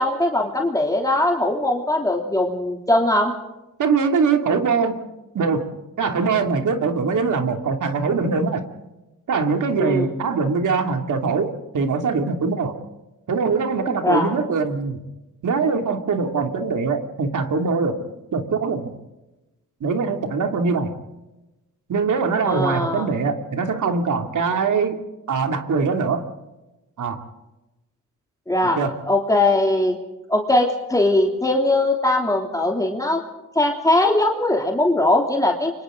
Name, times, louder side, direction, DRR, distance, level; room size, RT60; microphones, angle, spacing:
voice 1, 0.0-3.3 9.8-10.1 14.0-14.4 22.5-23.1 28.5-30.0 30.3-33.2 33.5-35.7, left 1 dB, 10° left, 1 dB, 3.1 m, -20 dB
voice 2, 3.8-5.0 5.3-8.6 9.3-12.7 13.3-15.0 15.4-18.0 18.3-18.9 19.8-20.9 21.9-25.0 25.3-26.2 27.0-27.2 28.6-28.9, right 4 dB, 65° right, 5 dB, 2.9 m, -22 dB
30.0 x 25.0 x 3.9 m, 1.0 s
cardioid pair, 85°, 32 cm